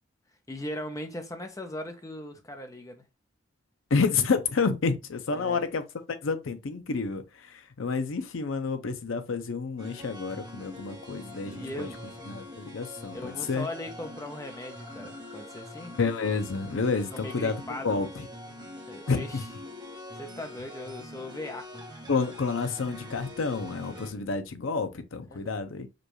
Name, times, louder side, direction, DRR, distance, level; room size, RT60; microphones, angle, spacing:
voice 1, 0.5-3.0 5.3-5.7 11.5-12.2 13.1-16.0 17.1-18.1 18.9-19.5 20.1-21.8 24.1-24.3 25.3-25.6, left 1 dB, 15° left, 0.5 m, -39 dB
voice 2, 3.9-5.8 6.2-11.9 12.3-13.7 16.0-18.3 19.1-19.2 22.1-25.9, left 4 dB, 75° left, 0.6 m, -29 dB
sound 1, 9.8-24.1, left 1 dB, 20° right, 0.9 m, -44 dB
5.0 x 2.3 x 3.0 m
head